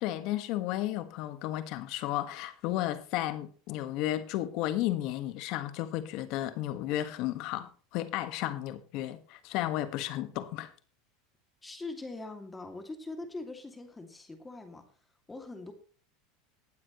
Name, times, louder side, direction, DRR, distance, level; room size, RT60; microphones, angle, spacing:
voice 1, 0.0-10.7, left 14 dB, 60° left, 1.6 m, -33 dB
voice 2, 11.6-14.8 15.3-15.7, left 2 dB, 10° left, 2.5 m, -42 dB
19.5 x 7.7 x 3.1 m
supercardioid pair, 120°, 0 cm